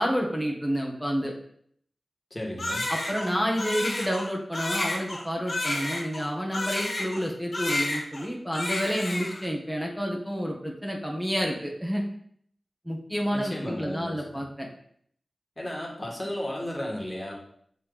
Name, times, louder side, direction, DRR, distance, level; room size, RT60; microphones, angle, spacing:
voice 1, 0.0-1.3 2.9-12.0 12.8-14.7, equal, 5° right, -1 dB, 1.5 m, -29 dB
voice 2, 2.3-2.9 13.3-14.5 15.6-17.3, left 1 dB, 30° left, -2 dB, 2.0 m, -34 dB
Crying sobbing, 2.6-7.3 7.5-8.3 8.5-9.5, left 2 dB, 60° left, 1.2 m, -31 dB
6.8 x 4.0 x 3.5 m, 0.64 s
cardioid pair, 45°, 0 cm